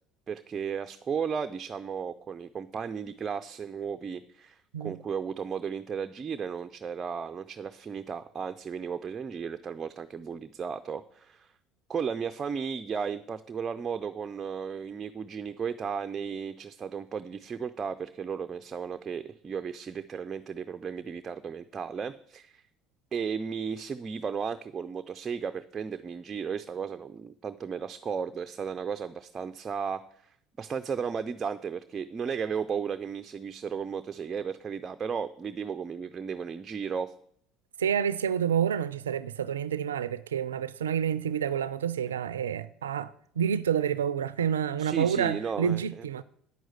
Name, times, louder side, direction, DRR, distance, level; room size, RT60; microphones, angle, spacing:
voice 1, 0.3-11.5 11.9-22.6 23.1-37.1 44.8-46.0, right 6 dB, 35° right, 0.5 m, -35 dB
voice 2, 37.8-46.2, right 8 dB, 90° right, 0.4 m, -29 dB
9.3 x 6.2 x 8.1 m
hypercardioid pair, 70°, 0 cm